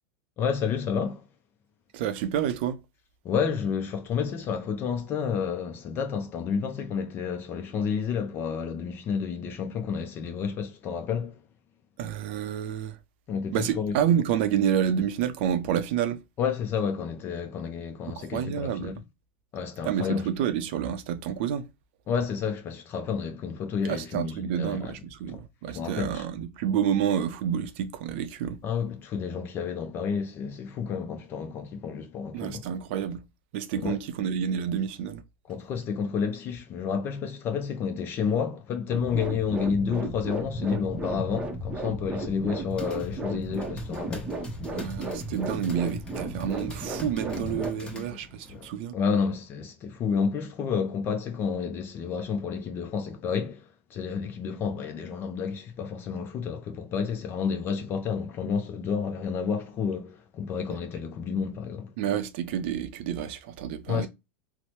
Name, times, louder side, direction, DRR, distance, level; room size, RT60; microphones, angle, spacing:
voice 1, 0.4-1.2 3.2-11.4 13.3-14.0 16.4-19.0 19.5-20.3 22.1-24.9 25.3-25.4 25.7-26.2 28.6-32.6 33.8-34.0 35.5-44.4 47.4-48.2 48.5-61.9 63.9-64.1, left 6 dB, 35° left, 0.4 m, -30 dB
voice 2, 1.9-2.8 12.0-13.0 13.5-16.2 18.2-18.9 19.8-21.6 23.9-28.6 32.3-33.2 33.5-35.2 44.7-48.9 60.7-60.8 62.0-64.1, right 9 dB, 65° right, 0.5 m, -29 dB
sound 1, 38.9-47.7, right 2 dB, 15° right, 0.6 m, -34 dB
sound 2, 42.4-48.6, left 2 dB, 15° left, 0.9 m, -46 dB
2.7 x 2.0 x 3.0 m
supercardioid pair, 125°, 7 cm